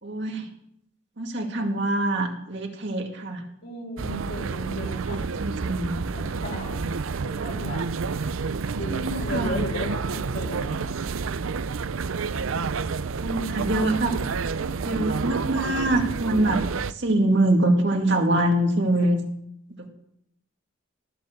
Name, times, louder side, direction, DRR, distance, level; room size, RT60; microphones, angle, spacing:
voice 1, 0.0-0.5 1.2-3.4 4.8-6.0 8.9-9.6 13.2-14.2 14.8-16.6 17.0-19.2 19.8-19.9, right 1 dB, 55° right, 2 dB, 2.1 m, -24 dB
voice 2, 3.6-5.2 6.1-6.9 7.2-7.8 8.8-10.9, equal, 50° left, 0 dB, 5.1 m, -35 dB
sound 1, 4.0-16.9, right 5 dB, 75° right, 0.5 m, -29 dB
19.0 x 7.4 x 7.7 m, 0.76 s
head